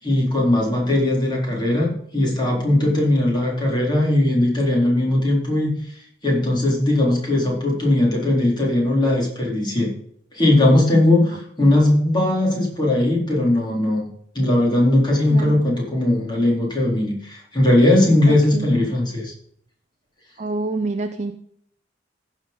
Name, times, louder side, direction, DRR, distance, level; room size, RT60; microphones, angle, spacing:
voice 1, 0.0-5.7 6.2-9.9 10.3-14.0 14.3-19.3, left 1 dB, 25° left, -3 dB, 3.9 m, -19 dB
voice 2, 15.3-15.6 18.3-18.7 20.4-21.3, right 2 dB, 40° right, 7 dB, 0.6 m, -27 dB
15.0 x 5.3 x 5.2 m, 0.67 s
head